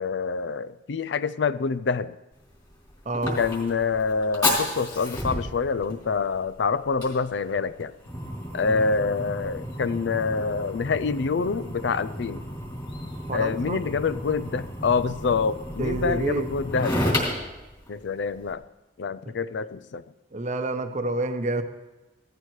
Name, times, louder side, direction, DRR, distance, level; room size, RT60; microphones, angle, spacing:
voice 1, 0.0-2.2 3.4-7.9 8.5-12.5 13.3-17.1 17.9-18.6 19.0-20.0, left 5 dB, 60° left, 15 dB, 0.4 m, -26 dB
Fire, 2.3-18.5, left 1 dB, 20° left, 3.2 m, -32 dB
voice 2, 3.0-3.4 8.6-8.9 13.3-13.8 15.8-16.5 20.3-21.6, right 2 dB, 35° right, 8 dB, 0.8 m, -28 dB
17.0 x 13.5 x 3.2 m, 1.1 s
head